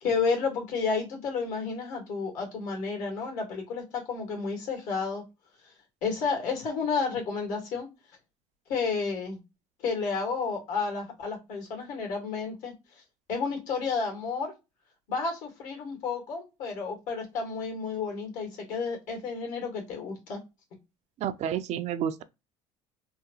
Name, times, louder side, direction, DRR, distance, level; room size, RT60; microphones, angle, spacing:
voice 1, 0.0-5.2 6.0-7.9 8.7-9.4 9.8-12.7 13.3-14.5 15.1-20.4, left 5 dB, 70° left, 1.9 m, -31 dB
voice 2, 21.2-22.2, right 9 dB, 55° right, 0.4 m, -30 dB
3.5 x 2.3 x 2.9 m
supercardioid pair, 95°, 14 cm